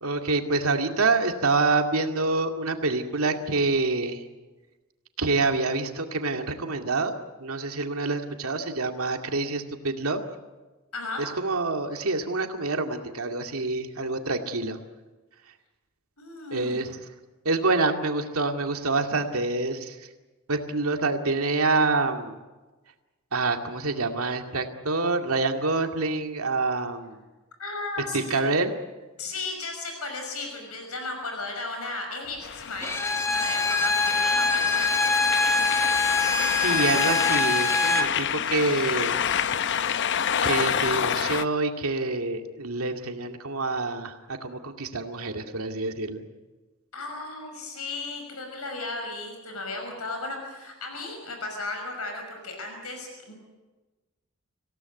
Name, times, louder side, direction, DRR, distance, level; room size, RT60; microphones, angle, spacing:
voice 1, 0.0-4.2 5.2-10.2 11.2-14.8 16.5-17.0 17.4-20.0 20.5-22.4 23.3-27.2 28.1-28.7 36.6-39.2 40.4-46.3, right 3 dB, 75° right, 5 dB, 2.3 m, -27 dB
voice 2, 10.9-11.2 16.2-16.8 27.6-28.4 29.2-35.0 46.9-53.3, left 3 dB, 85° left, 4 dB, 5.9 m, -35 dB
sound 1, 32.4-41.4, left 8 dB, 55° left, 0.7 m, -28 dB
Bowed string instrument, 32.8-38.1, left 3 dB, 10° left, 1.5 m, -24 dB
26.0 x 17.5 x 9.4 m, 1.2 s
head